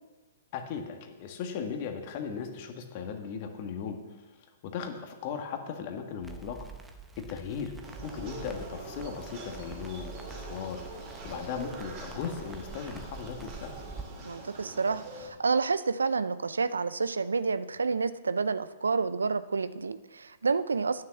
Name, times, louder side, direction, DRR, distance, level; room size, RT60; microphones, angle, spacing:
voice 1, 0.5-6.7 7.2-7.7 8.0-13.7, left 6 dB, 45° left, 5 dB, 1.6 m, -37 dB
Crackle, 6.2-14.0, right 3 dB, 10° right, 0.9 m, -46 dB
sound 1, 7.8-15.3, right 2 dB, 35° right, 3.4 m, -44 dB
voice 2, 14.3-21.0, right 4 dB, 85° right, 14 dB, 0.5 m, -29 dB
9.3 x 6.6 x 7.0 m, 1.2 s
hypercardioid pair, 120°, 0 cm